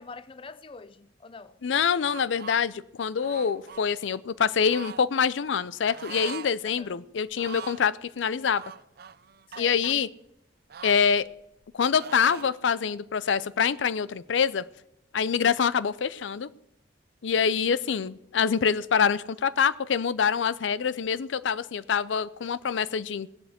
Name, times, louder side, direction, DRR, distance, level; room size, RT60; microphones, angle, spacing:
voice 1, 0.0-1.6 6.6-7.0 9.5-10.0 15.4-15.7, left 4 dB, 30° left, 0.5 m, -45 dB
voice 2, 1.6-8.6 9.6-10.1 10.8-11.3 11.7-14.6 15.1-16.5 17.2-23.3, left 6 dB, 85° left, 0.5 m, -25 dB
sound 1, 2.0-2.6 3.2-3.9 4.6-5.0 5.9-6.5 6.8-6.9 7.3-7.9 8.5-9.9 10.7-11.7 12.0-12.5, right 7 dB, 55° right, 0.5 m, -42 dB
17.0 x 7.8 x 7.9 m
head